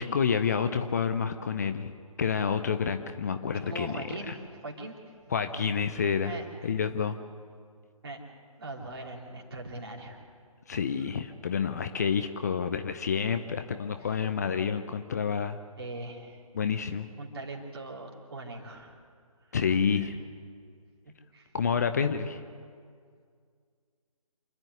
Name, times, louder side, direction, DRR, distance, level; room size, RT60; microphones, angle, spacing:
voice 1, 0.0-1.9 2.2-4.0 4.3-4.4 5.3-6.3 6.6-7.2 10.7-15.6 16.5-17.1 19.5-20.2 21.5-22.4, left 6 dB, 30° left, 8 dB, 0.7 m, -28 dB
voice 2, 3.7-4.9 6.3-6.7 8.0-8.2 8.6-10.2 14.0-14.1 15.8-16.4 17.2-19.0 19.5-19.6 20.0-20.1 21.0-21.5, right 2 dB, 40° right, 0 dB, 3.4 m, -41 dB
27.5 x 10.5 x 9.6 m, 2.1 s
figure-of-eight pair, 145°, 19 cm